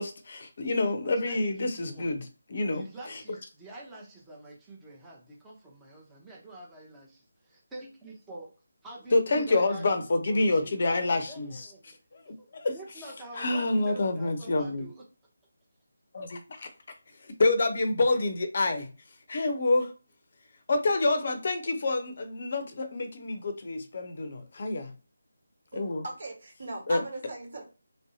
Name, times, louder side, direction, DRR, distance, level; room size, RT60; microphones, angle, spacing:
voice 1, 0.0-2.2 2.5-3.2 9.1-11.7 12.1-12.7 13.4-14.9 16.1-16.7 17.4-18.9 19.3-19.9 20.7-24.9 25.7-26.0 26.9-27.0, left 2 dB, 45° left, 0.5 m, -27 dB
voice 2, 1.0-2.1 2.7-8.5 8.8-9.8 10.1-10.9 11.3-11.8 12.4-12.5 12.7-15.0, right 2 dB, 10° right, 0.6 m, -46 dB
voice 3, 25.7-27.6, right 2 dB, 55° right, 1.3 m, -39 dB
3.1 x 2.6 x 2.7 m
figure-of-eight pair, 155°, 0 cm